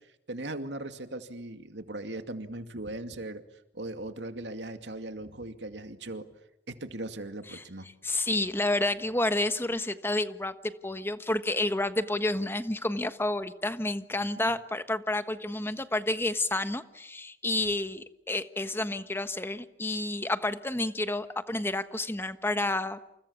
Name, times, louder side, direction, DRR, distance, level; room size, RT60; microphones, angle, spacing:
voice 1, 0.3-3.4 3.7-6.3 6.7-7.9 14.4-14.5, right 2 dB, 80° right, 7 dB, 2.4 m, -38 dB
voice 2, 8.0-23.0, left 2 dB, 15° left, 10 dB, 1.3 m, -30 dB
29.0 x 29.0 x 7.2 m, 0.85 s
head